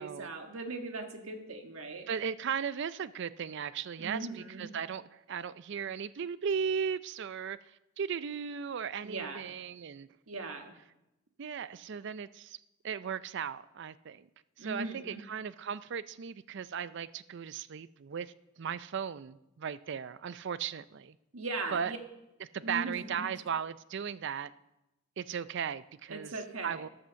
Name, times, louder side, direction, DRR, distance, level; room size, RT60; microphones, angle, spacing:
voice 1, 0.0-2.1 4.0-4.7 9.0-9.5 10.3-10.8 14.6-15.2 21.3-22.0 22.6-23.3 26.1-26.8, right 3 dB, 90° right, 1.6 m, -39 dB
voice 2, 2.1-7.6 8.0-10.1 11.4-12.6 12.8-14.3 14.6-18.3 18.6-21.2 21.7-21.9 22.5-24.5 25.2-26.3 26.6-26.9, right 7 dB, 60° right, 0.4 m, -36 dB
13.5 x 7.7 x 6.4 m
head